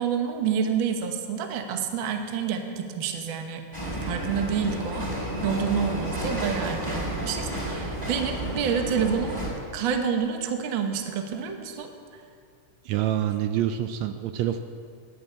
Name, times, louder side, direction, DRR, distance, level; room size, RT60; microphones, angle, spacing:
voice 1, 0.0-9.5 9.7-11.9, right 7 dB, 60° right, 5 dB, 1.3 m, -28 dB
sound 1, 3.7-9.5, right 1 dB, 5° right, 4.1 m, -31 dB
voice 2, 12.8-14.6, right 11 dB, 85° right, 8 dB, 1.6 m, -26 dB
10.5 x 9.8 x 8.4 m, 2.2 s
omnidirectional pair, 3.6 m